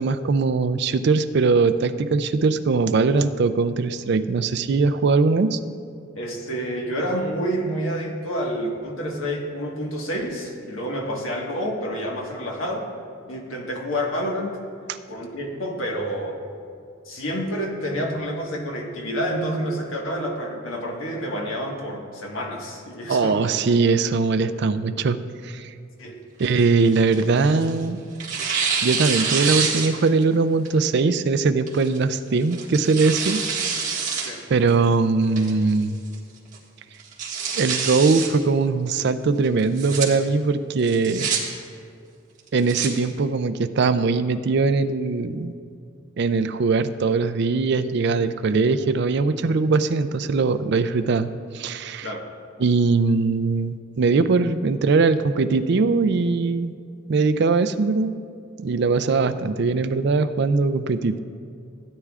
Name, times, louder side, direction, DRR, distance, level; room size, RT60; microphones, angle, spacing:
voice 1, 0.0-5.6 23.1-25.2 25.4-25.7 26.4-28.0 28.8-33.4 34.5-36.0 37.6-41.3 42.5-45.5 46.2-51.3 51.5-52.1 52.6-56.7 57.1-58.2 58.6-61.2, right 4 dB, 55° right, 11 dB, 0.4 m, -21 dB
voice 2, 6.2-12.9 13.3-14.6 15.1-16.4 17.0-23.6 26.0-26.2 34.2-34.4 52.0-52.2, equal, 80° left, 0 dB, 1.5 m, -28 dB
Tearing, 26.4-27.7 28.2-30.2 30.7-30.8 31.7-32.0 32.5-34.3 34.7-34.8 35.4-35.8 36.1-36.2 36.5-36.6 37.0-38.3 39.6-40.1 40.8-41.4 42.4-42.9, right 6 dB, 40° right, 1.7 m, -26 dB
16.5 x 9.5 x 2.4 m, 2.3 s
head